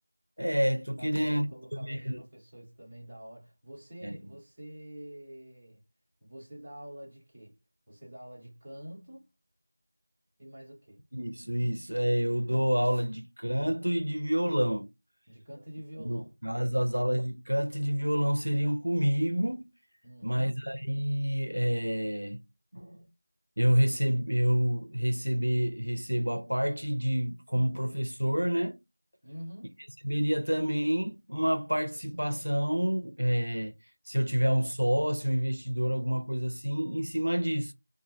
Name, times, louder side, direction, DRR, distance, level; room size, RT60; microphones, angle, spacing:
voice 1, 0.4-2.2 4.0-4.2 11.1-14.9 16.0-19.7 20.2-22.4 22.7-23.1 23.6-28.8 30.0-33.7 34.1-37.7, equal, 85° right, 0.4 m, -28 dB
voice 2, 1.0-5.8 6.2-7.6 7.9-9.3 10.4-11.0 15.3-16.9 20.0-20.7 29.2-29.9, equal, 10° right, 0.8 m, -47 dB
2.6 x 2.2 x 3.0 m
figure-of-eight pair, 175°, 0 cm